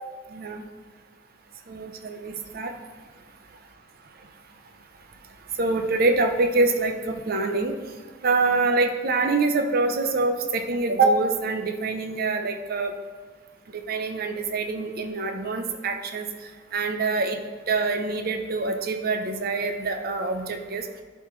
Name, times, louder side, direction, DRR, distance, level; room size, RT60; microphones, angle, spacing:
voice 1, 0.3-0.6 1.7-2.7 5.6-7.8 8.2-12.9 13.7-16.3 16.7-17.4 17.7-20.9, right 3 dB, 50° right, 5 dB, 0.6 m, -25 dB
11.5 x 4.3 x 3.1 m, 1.5 s
head